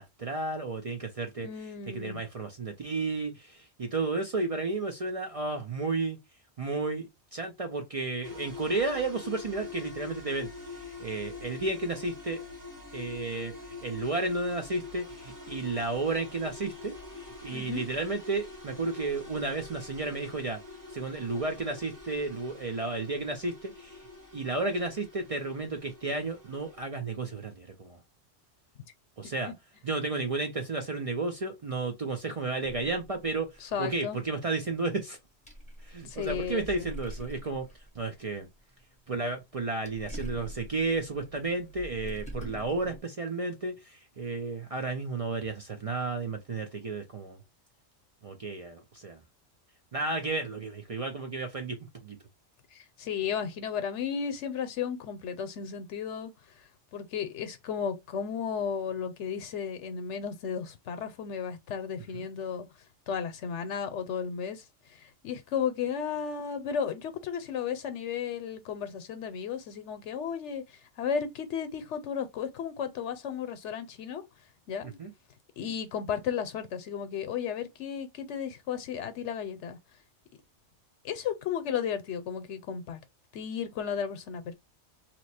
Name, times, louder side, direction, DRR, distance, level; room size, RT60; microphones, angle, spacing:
voice 1, 0.0-1.5 1.9-6.2 6.6-12.4 12.9-20.6 20.9-24.1 24.3-28.0 29.2-29.5 29.8-35.2 35.8-37.7 37.9-38.5 39.1-47.4 48.2-49.2 49.9-52.2 62.1-62.3 75.0-75.1, right 3 dB, 50° right, 0.4 m, -32 dB
voice 2, 1.4-2.2 17.5-17.8 29.5-29.6 33.6-34.2 36.1-36.9 52.7-56.3 56.9-62.7 63.1-64.6 64.9-70.6 71.0-74.2 74.7-75.0 75.6-79.8 81.0-83.0 83.3-84.5, left 7 dB, 80° left, 1.0 m, -34 dB
sound 1, 8.2-26.8, left 4 dB, 20° right, 1.0 m, -45 dB
sound 2, 32.6-34.2 34.6-34.7 35.3-39.2 39.5-43.0, right 1 dB, 10° left, 0.5 m, -44 dB
2.9 x 2.0 x 4.1 m
omnidirectional pair, 1.2 m